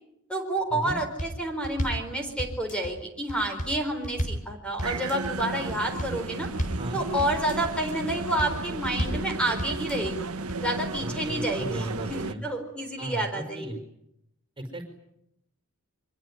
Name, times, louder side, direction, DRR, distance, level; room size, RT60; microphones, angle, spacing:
voice 1, 0.3-6.5 6.9-10.2 10.6-13.7, right 1 dB, 5° left, 4 dB, 4.3 m, -29 dB
sound 1, 0.9-1.4 1.6-2.1 2.4-2.9 3.3-3.8 4.0-4.5 4.8-5.3 5.7-6.2 6.4-6.9 7.2-7.7 8.1-8.6 8.8-9.3 9.6-10.1 10.5-10.6, equal, 40° left, 4.7 m, -32 dB
sound 2, 4.8-12.3, right 3 dB, 85° right, 1.6 m, -34 dB
voice 2, 11.0-12.4 13.0-13.8 14.6-14.9, right 1 dB, 25° right, 7 dB, 4.9 m, -35 dB
25.5 x 21.5 x 9.9 m, 0.77 s
head